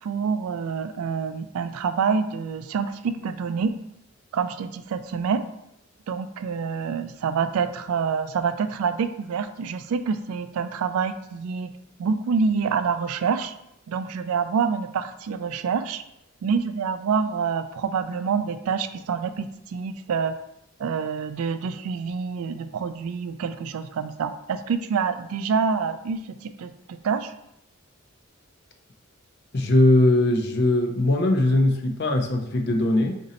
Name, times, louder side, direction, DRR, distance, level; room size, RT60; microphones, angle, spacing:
voice 1, 0.0-3.7 4.3-5.4 6.1-11.7 12.0-13.5 13.9-16.0 16.4-20.4 20.8-27.3, right 6 dB, 85° right, 10 dB, 0.3 m, -27 dB
voice 2, 29.5-33.2, left 1 dB, 50° left, 4 dB, 0.5 m, -20 dB
4.1 x 2.6 x 4.0 m, 0.80 s
head